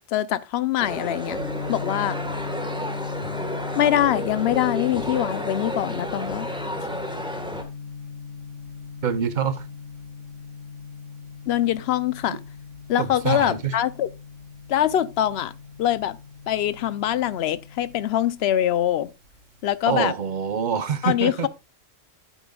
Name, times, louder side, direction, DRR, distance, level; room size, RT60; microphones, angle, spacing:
voice 1, 0.0-1.4 1.7-2.2 3.8-6.5 11.5-12.4 12.9-14.1 14.7-15.5 15.8-16.2 16.5-19.1 19.6-20.1 21.0-21.5, left 11 dB, 65° left, 0.8 m, -23 dB
sound 1, 0.8-7.6, equal, 5° right, 1.3 m, -32 dB
Gong, 1.3-19.9, left 5 dB, 75° right, 2.9 m, -38 dB
voice 2, 9.0-9.7 12.3-12.4 13.0-13.8 19.9-21.5, right 7 dB, 45° right, 0.8 m, -25 dB
10.0 x 8.9 x 2.3 m
omnidirectional pair, 1.3 m